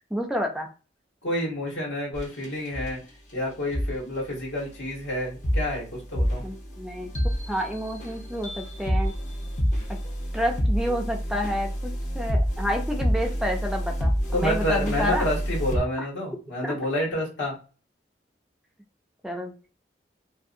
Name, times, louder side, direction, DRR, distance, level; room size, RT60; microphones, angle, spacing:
voice 1, 0.1-0.7 6.4-7.1 7.5-9.1 10.3-15.3 16.6-16.8 19.2-19.7, equal, 5° right, 1 dB, 0.4 m, -29 dB
voice 2, 1.2-3.0 3.3-6.4 14.3-17.5, left 1 dB, 90° left, -3 dB, 1.5 m, -29 dB
sound 1, 2.1-2.5 2.7-2.9 3.7-3.9 4.6-15.8, equal, 45° left, 0.8 m, -28 dB
2.7 x 2.6 x 2.6 m, 0.35 s
head